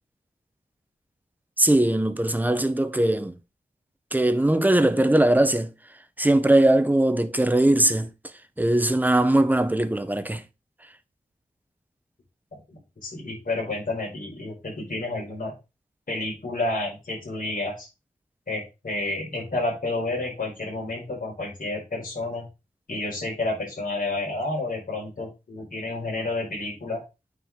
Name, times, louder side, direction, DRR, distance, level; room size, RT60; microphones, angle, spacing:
voice 1, 1.6-3.3 4.1-5.7 6.2-8.1 8.6-10.4, right 1 dB, 10° right, 0.7 m, -20 dB
voice 2, 12.7-15.5 16.1-17.9 18.5-22.5 22.9-27.0, left 2 dB, 65° left, 5.0 m, -30 dB
9.1 x 4.7 x 3.6 m
wide cardioid pair, 85°, 16 cm